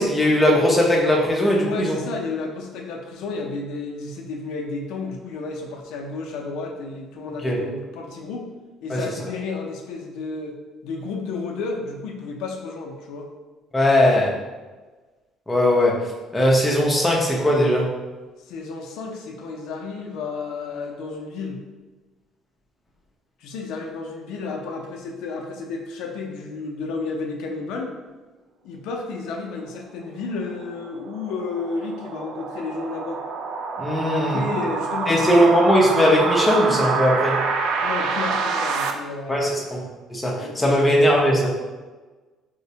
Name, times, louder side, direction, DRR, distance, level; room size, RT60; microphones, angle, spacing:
voice 1, 0.0-2.0 7.4-7.6 8.9-9.1 13.7-14.3 15.5-16.0 16.3-17.9 33.8-34.4 35.1-37.4 39.3-41.5, equal, 10° left, -3 dB, 0.5 m, -19 dB
voice 2, 1.6-8.4 8.8-10.5 10.8-13.3 18.5-21.6 23.4-27.9 28.6-33.2 34.0-35.5 37.8-39.7 40.3-40.9, left 4 dB, 75° left, 1 dB, 0.4 m, -32 dB
sound 1, 30.2-38.9, right 4 dB, 70° right, 0.3 m, -27 dB
4.3 x 2.1 x 2.7 m, 1.3 s
cardioid pair, 155°, 0 cm